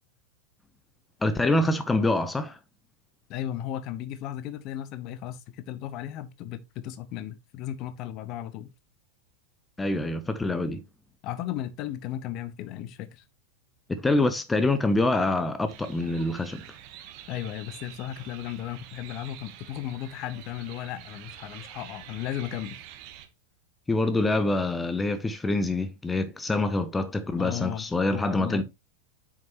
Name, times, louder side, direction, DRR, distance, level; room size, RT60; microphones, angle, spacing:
voice 1, 1.2-2.6 9.8-10.8 13.9-16.6 23.9-28.6, left 2 dB, 10° left, 0.7 m, -25 dB
voice 2, 3.3-8.7 11.2-13.2 17.3-22.8 27.4-28.6, left 11 dB, 40° left, 0.9 m, -35 dB
sound 1, 15.7-23.3, right 11 dB, 45° right, 1.4 m, -47 dB
8.5 x 6.4 x 3.0 m
figure-of-eight pair, 90°, 0 cm